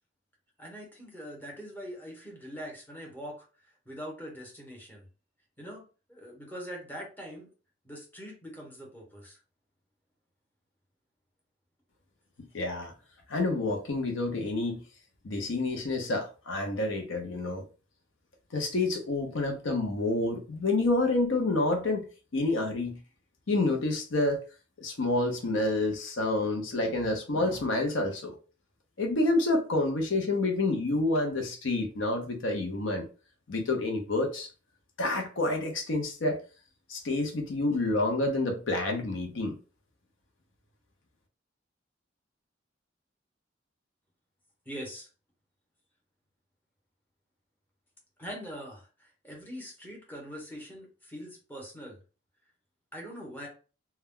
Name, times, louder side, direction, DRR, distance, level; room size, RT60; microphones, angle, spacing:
voice 1, 0.6-5.1 5.6-5.8 6.1-7.5 7.8-9.4 44.7-45.1 48.2-52.0 52.9-53.5, equal, 10° left, 0.9 m, -43 dB
voice 2, 12.5-12.9 13.3-14.8 15.2-17.6 18.5-23.0 23.5-24.4 24.8-28.4 29.0-33.1 33.5-34.5 35.0-36.4 36.9-39.6, left 2 dB, 80° left, 0.6 m, -28 dB
2.2 x 2.1 x 3.5 m
head